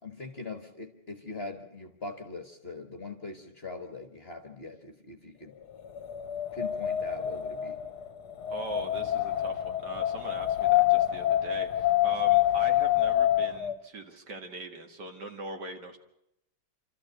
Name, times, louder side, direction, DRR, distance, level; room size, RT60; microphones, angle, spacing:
voice 1, 0.0-5.6 6.5-7.8, left 3 dB, 35° left, 6 dB, 1.6 m, -41 dB
Wind, 5.8-13.7, left 13 dB, 60° left, 1.5 m, -27 dB
voice 2, 8.5-16.0, right 2 dB, 55° right, 4 dB, 2.5 m, -41 dB
28.5 x 13.5 x 8.1 m, 0.81 s
omnidirectional pair, 2.1 m